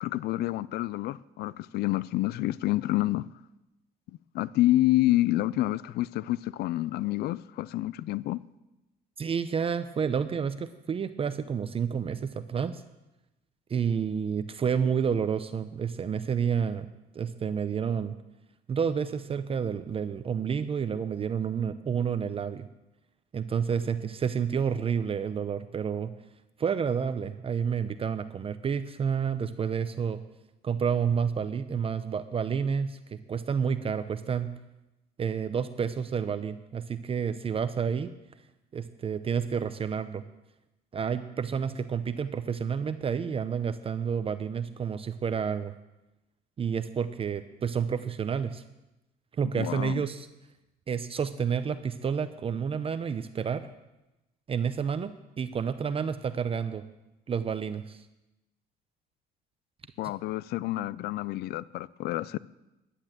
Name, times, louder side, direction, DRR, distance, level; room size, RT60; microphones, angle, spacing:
voice 1, 0.0-3.3 4.3-8.4 49.6-50.0 60.0-62.4, left 16 dB, 70° left, 0.4 m, -28 dB
voice 2, 9.2-12.8 13.7-16.9 17.1-18.2 18.7-22.7 23.3-26.1 26.6-30.2 30.6-34.5 35.2-38.1 38.7-40.2 40.9-45.7 46.6-48.6 49.4-50.3 50.9-53.7 54.5-56.8 57.3-58.0, right 7 dB, 35° right, 0.6 m, -30 dB
11.5 x 10.0 x 7.4 m
cardioid pair, 110°, 17 cm